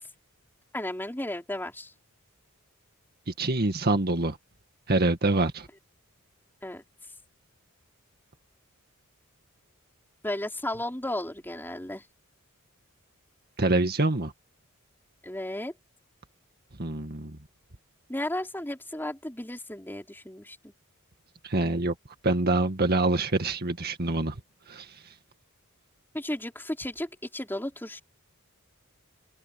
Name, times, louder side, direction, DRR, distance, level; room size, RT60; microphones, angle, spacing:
voice 1, 0.7-1.9 6.6-6.8 10.2-12.0 15.2-15.7 18.1-20.7 26.1-28.0, left 1 dB, 10° left, 4.1 m, -34 dB
voice 2, 3.4-4.4 4.9-5.7 13.6-14.3 16.8-17.4 21.4-21.9 22.2-24.3 24.7-24.9, right 2 dB, 45° right, 2.0 m, -25 dB
open air
head